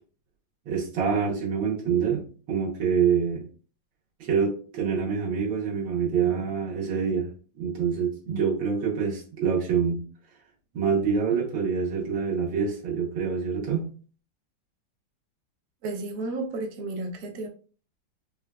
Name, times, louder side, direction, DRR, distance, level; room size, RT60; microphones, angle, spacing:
voice 1, 0.7-3.5 4.2-7.3 7.6-10.0 10.7-13.8, right 6 dB, 85° right, 1.7 m, -26 dB
voice 2, 15.8-17.5, right 2 dB, 65° right, 0.9 m, -32 dB
4.3 x 2.2 x 2.3 m
omnidirectional pair, 2.0 m